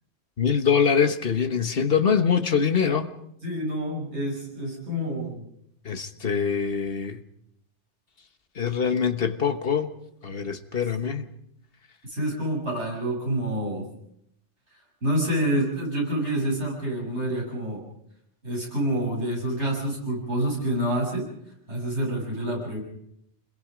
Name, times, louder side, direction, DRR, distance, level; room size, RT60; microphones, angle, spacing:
voice 1, 0.4-3.1 5.8-7.2 8.6-9.9 10.2-11.3, left 6 dB, 55° left, 1.5 m, -24 dB
voice 2, 3.4-5.4 12.0-13.9 15.0-17.8 18.4-21.3 21.7-22.8, right 1 dB, 70° right, 7.3 m, -27 dB
26.5 x 21.5 x 5.1 m
omnidirectional pair, 1.2 m